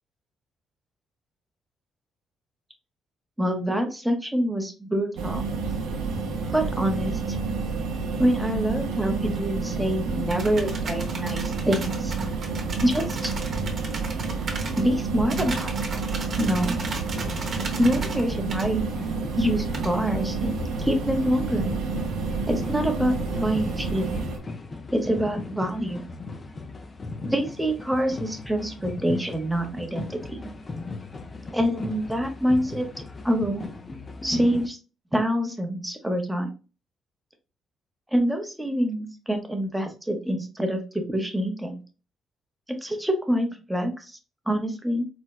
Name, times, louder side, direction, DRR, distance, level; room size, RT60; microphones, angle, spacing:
voice 1, 3.4-5.4 6.5-7.4 8.2-12.1 12.8-13.3 14.7-15.7 16.4-16.8 17.8-18.8 19.4-21.7 22.5-24.0 24.9-26.0 27.2-30.4 31.5-32.9 33.2-33.7 34.2-34.8 35.1-36.5 38.1-41.8 42.8-44.2 44.5-45.1, equal, 5° right, 4 dB, 0.8 m, -26 dB
sound 1, 5.2-24.4, right 4 dB, 80° right, 0.5 m, -29 dB
sound 2, 10.3-14.8 15.3-18.2 18.5-18.7 19.7-19.9, right 4 dB, 50° right, 0.9 m, -36 dB
sound 3, 16.3-34.7, left 3 dB, 30° left, 0.5 m, -39 dB
4.2 x 2.1 x 2.3 m, 0.33 s
cardioid pair, 90°, 0 cm